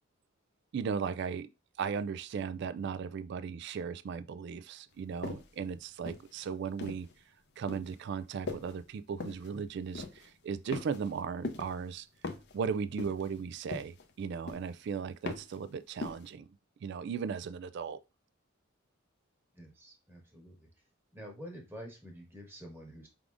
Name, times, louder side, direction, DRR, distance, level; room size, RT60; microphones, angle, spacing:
voice 1, 0.7-1.5 1.8-7.1 7.6-12.1 12.5-16.5 16.8-18.0, right 6 dB, 55° right, 0.3 m, -36 dB
sound 1, 5.2-5.6 6.1-7.1 7.7-8.0 8.5-8.8 9.2-9.5 9.9-10.3 10.7-11.2 11.4-11.8 12.2-12.6 13.0-13.4 13.7-14.1 14.5-14.8 15.3-15.6 16.0-16.3, left 3 dB, 55° left, 0.7 m, -40 dB
voice 2, 19.5-20.7 21.1-23.1, equal, 10° right, 1.3 m, -48 dB
4.8 x 3.6 x 2.5 m
head